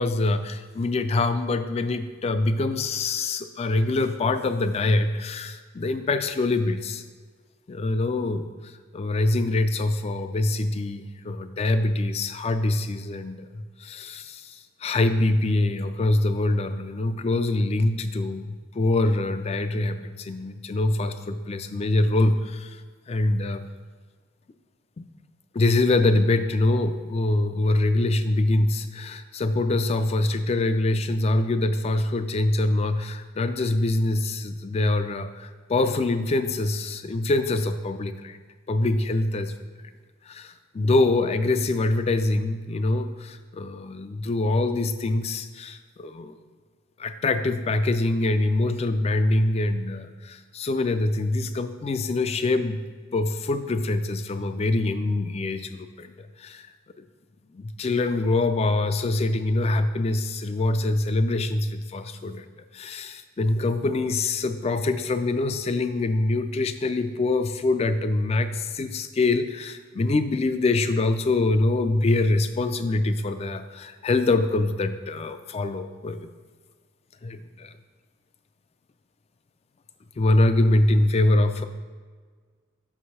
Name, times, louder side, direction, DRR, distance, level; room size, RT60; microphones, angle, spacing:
voice 1, 0.0-7.0 7.7-22.8 23.1-23.7 25.0-25.1 25.5-38.4 38.7-39.5 40.3-46.4 47.0-52.9 53.1-56.7 57.0-57.1 57.5-62.5 62.7-76.3 77.2-77.7 80.2-81.7, left 2 dB, 30° left, 10 dB, 0.3 m, -24 dB
6.0 x 4.8 x 5.5 m, 1.5 s
head